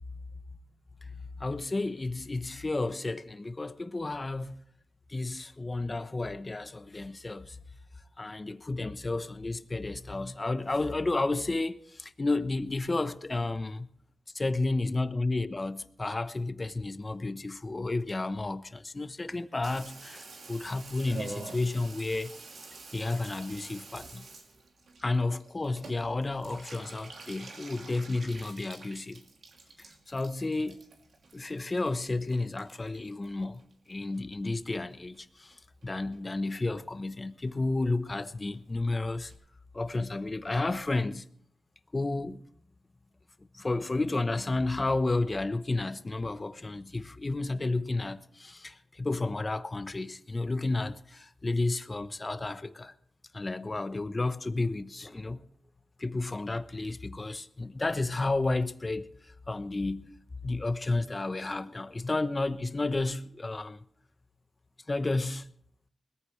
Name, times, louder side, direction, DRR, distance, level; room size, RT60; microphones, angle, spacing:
voice 1, 1.4-4.6 5.1-7.6 8.2-13.9 14.3-22.3 22.9-24.3 25.0-29.2 29.8-30.8 31.3-39.3 39.7-41.2 41.9-42.4 43.5-52.9 53.3-55.4 56.0-60.1 60.4-63.8 64.9-65.5, left 2 dB, 30° left, 1.0 m, -32 dB
Water tap faucet / Bathtub (filling or washing), 19.6-34.2 34.4-35.2 35.5-35.6 35.8-35.9 36.1-36.5 36.8-36.9 37.1-37.2 37.5-37.6 37.8-37.9 38.1-38.2 38.5-38.6 38.9-39.0 39.3-39.4, right 3 dB, 70° right, 2.8 m, -48 dB
20.5 x 14.5 x 3.3 m
cardioid pair, 70°, 0 cm